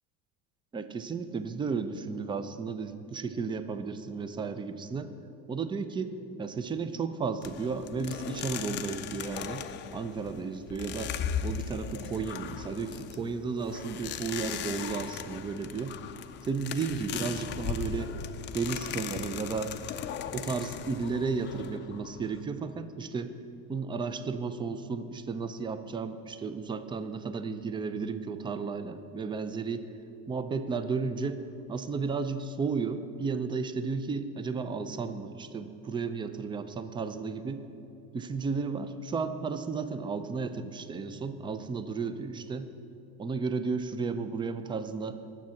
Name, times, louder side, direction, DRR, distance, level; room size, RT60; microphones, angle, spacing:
voice 1, 0.7-5.1 5.5-6.1 6.4-9.6 9.9-11.1 11.4-16.0 16.4-18.1 18.5-19.7 20.3-23.3 23.7-29.9 30.3-31.4 31.7-37.6 38.1-42.7 43.2-45.2, right 5 dB, 15° right, 11 dB, 0.5 m, -33 dB
sound 1, 7.4-22.4, left 8 dB, 40° left, 0.5 m, -38 dB
9.3 x 7.4 x 7.0 m, 2.7 s
cardioid pair, 130°, 30 cm